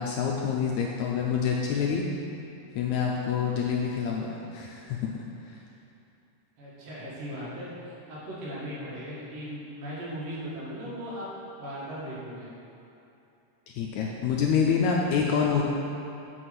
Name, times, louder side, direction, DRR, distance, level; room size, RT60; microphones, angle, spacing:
voice 1, 0.0-2.0 2.7-5.1 5.4-5.6 13.7-15.6, left 6 dB, 80° left, -1 dB, 1.7 m, -27 dB
voice 2, 6.6-11.3 11.6-12.5, equal, 85° right, -8 dB, 3.6 m, -38 dB
8.3 x 4.7 x 5.9 m, 2.8 s
omnidirectional pair, 3.8 m